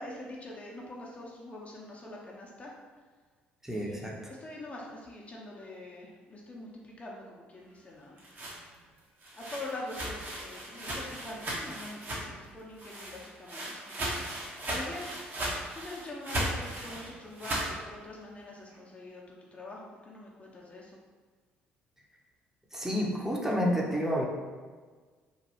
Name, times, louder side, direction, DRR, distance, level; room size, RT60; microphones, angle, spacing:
voice 1, 0.0-2.7 3.7-8.2 9.3-15.4 15.7-21.0, left 2 dB, 30° left, -3 dB, 0.6 m, -44 dB
voice 2, 3.6-4.1 22.7-24.2, equal, 10° right, -2 dB, 0.7 m, -29 dB
sound 1, 8.0-12.5 12.8-17.7, right 1 dB, 45° right, 0.9 m, -36 dB
3.1 x 2.2 x 3.0 m, 1.5 s
hypercardioid pair, 55°, 5 cm